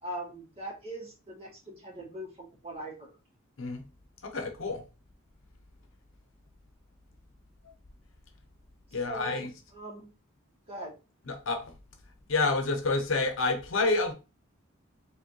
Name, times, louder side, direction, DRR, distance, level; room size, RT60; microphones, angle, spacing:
voice 1, 0.0-3.1 8.9-10.1 10.7-10.9, right 1 dB, 30° right, 2.1 m, -41 dB
voice 2, 4.2-4.8 8.9-9.5 11.3-11.7 12.3-14.1, left 3 dB, 70° left, 0.8 m, -28 dB
4.9 x 3.1 x 3.0 m
head